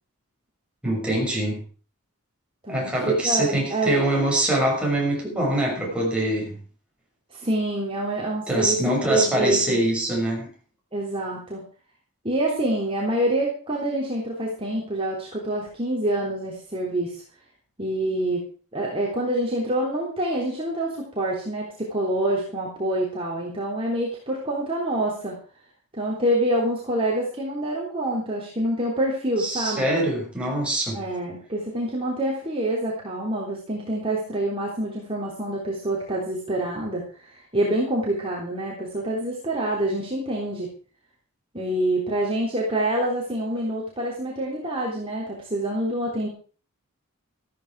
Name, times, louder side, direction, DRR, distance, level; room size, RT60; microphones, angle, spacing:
voice 1, 0.8-1.6 2.7-6.5 8.5-10.5 29.4-31.0, right 1 dB, 5° right, -2 dB, 6.2 m, -24 dB
voice 2, 2.6-4.0 7.3-8.8 9.0-9.8 10.9-11.7 12.2-17.2 17.8-18.4 18.7-25.4 25.9-29.9 30.9-40.7 41.5-46.3, right 1 dB, 25° right, -3 dB, 3.5 m, -26 dB
14.5 x 13.5 x 4.8 m, 0.39 s
head